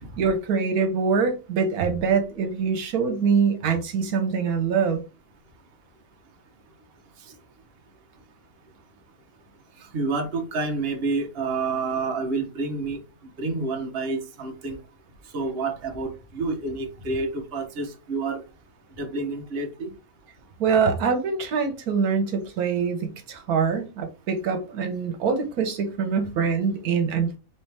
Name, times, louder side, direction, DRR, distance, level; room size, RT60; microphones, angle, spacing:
voice 1, 0.2-5.0 20.6-27.4, right 5 dB, 85° right, 5 dB, 1.3 m, -24 dB
voice 2, 9.8-13.0 13.4-14.8 15.2-18.4 19.0-19.9, right 3 dB, 45° right, 3 dB, 1.1 m, -29 dB
4.4 x 3.1 x 3.3 m, 0.30 s
omnidirectional pair, 1.5 m